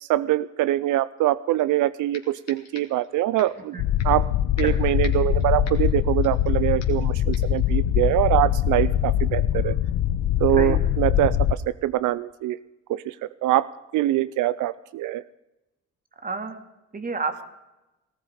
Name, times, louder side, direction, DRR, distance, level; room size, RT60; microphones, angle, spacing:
voice 1, 0.0-3.8 4.0-4.3 4.6-9.8 10.4-12.6 12.9-13.2 13.4-15.2, right 15 dB, 80° right, 17 dB, 0.5 m, -24 dB
sound 1, 1.6-1.7 2.1-3.1 3.4-3.6 4.0-4.3 4.6-6.5 6.8-7.1 7.3-7.6, left 7 dB, 55° left, 2.9 m, -44 dB
sound 2, 3.8-11.5, left 11 dB, 90° left, 0.7 m, -23 dB
voice 2, 16.2-16.6 16.9-17.4, right 4 dB, 30° right, 8 dB, 2.1 m, -30 dB
18.5 x 14.5 x 5.1 m, 1.0 s
cardioid pair, 90°, 30 cm